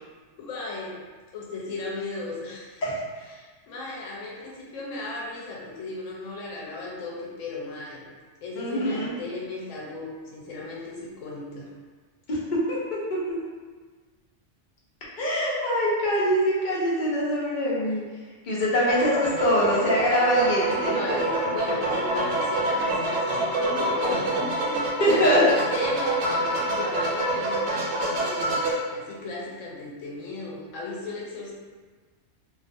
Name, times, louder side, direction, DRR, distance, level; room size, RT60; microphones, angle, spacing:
voice 1, 0.4-1.0 1.3-2.8 3.3-8.0 8.4-11.7 20.8-27.9 28.2-31.5, left 3 dB, 80° left, -4 dB, 1.0 m, -35 dB
voice 2, 8.6-9.1 12.3-12.4 12.7-12.8 13.1-13.4 15.2-21.0 25.0-25.4, equal, 50° left, -6 dB, 0.7 m, -24 dB
sound 1, 18.8-28.7, right 2 dB, 90° right, 1.0 m, -26 dB
2.4 x 2.3 x 2.5 m, 1.4 s
omnidirectional pair, 1.3 m